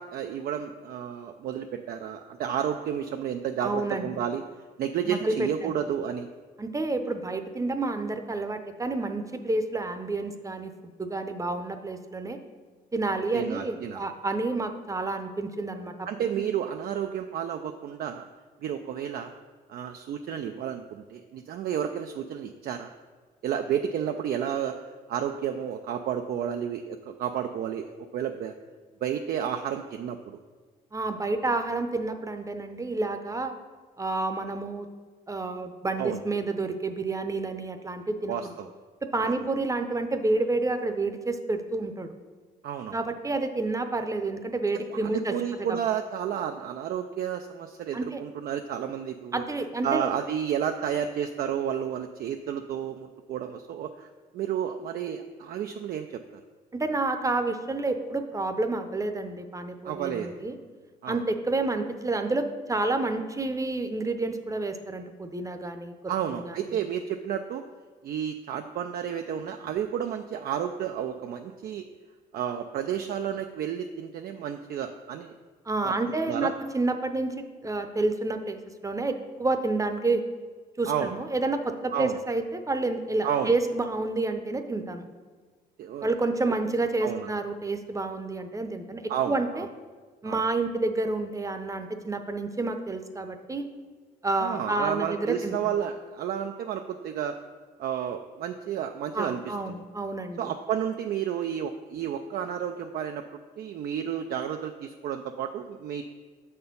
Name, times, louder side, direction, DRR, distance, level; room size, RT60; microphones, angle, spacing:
voice 1, 0.0-4.4 4.8-6.3 13.3-14.0 16.1-18.2 18.6-19.3 19.7-22.9 23.4-24.8 25.1-28.6 29.0-30.4 36.0-36.2 38.3-38.7 39.2-39.3 42.6-43.0 44.7-49.4 49.8-56.4 59.8-60.3 61.0-61.2 66.1-67.6 68.0-71.8 72.3-75.4 75.8-76.5 80.9-81.2 81.9-82.2 83.2-83.5 85.8-86.1 87.0-87.3 89.1-89.7 90.2-90.4 94.4-97.4 97.8-99.8 100.4-103.2 103.6-106.0, right 9 dB, 65° right, 6 dB, 0.4 m, -31 dB
voice 2, 3.6-4.1 5.1-5.7 6.6-10.7 11.0-12.4 12.9-16.1 30.9-33.5 34.0-34.9 35.3-38.4 39.0-42.1 42.9-45.8 47.9-48.2 49.3-50.1 56.7-60.5 61.1-65.9 66.4-66.6 75.7-80.2 80.8-85.0 86.0-89.7 90.2-93.7 94.2-95.5 99.1-100.4, right 2 dB, 20° right, 7 dB, 0.7 m, -29 dB
6.7 x 4.4 x 5.3 m, 1.4 s
cardioid pair, 75°, 17 cm